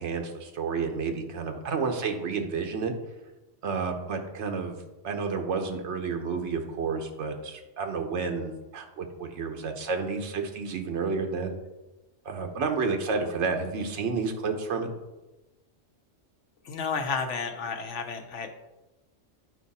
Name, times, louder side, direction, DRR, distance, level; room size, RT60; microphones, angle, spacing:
voice 1, 0.0-2.9 3.6-4.8 5.0-11.5 12.2-14.9, right 4 dB, 75° right, 4 dB, 1.2 m, -30 dB
voice 2, 16.6-18.7, left 5 dB, 80° left, 6 dB, 1.2 m, -32 dB
9.8 x 4.7 x 4.1 m, 1.1 s
omnidirectional pair, 1.2 m